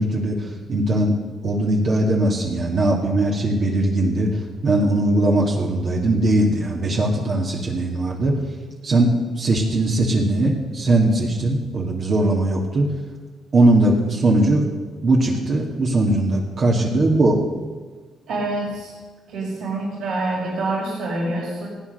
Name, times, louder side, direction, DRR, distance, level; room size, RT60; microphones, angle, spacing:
voice 1, 0.0-4.3 4.6-8.3 8.8-12.9 13.5-14.7 15.0-17.4, right 1 dB, 50° right, -1 dB, 2.2 m, -20 dB
voice 2, 18.3-18.9 19.3-21.7, right 2 dB, 80° right, -4 dB, 5.1 m, -26 dB
16.5 x 9.1 x 6.7 m, 1.4 s
cardioid pair, 90°, 0 cm